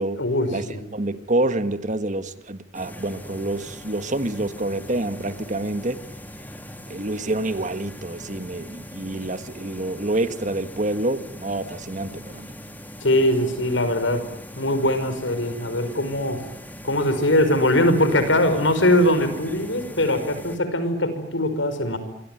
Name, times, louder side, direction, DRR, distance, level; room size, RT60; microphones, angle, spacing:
voice 1, 0.2-0.8 13.0-14.2 14.6-16.4 16.8-22.0, left 1 dB, 90° left, 10 dB, 5.4 m, -21 dB
voice 2, 0.9-6.0 6.9-12.5, right 2 dB, 40° right, 11 dB, 1.6 m, -27 dB
sound 1, 2.7-20.6, equal, 10° left, 3.2 m, -41 dB
27.0 x 24.0 x 9.2 m, 0.73 s
head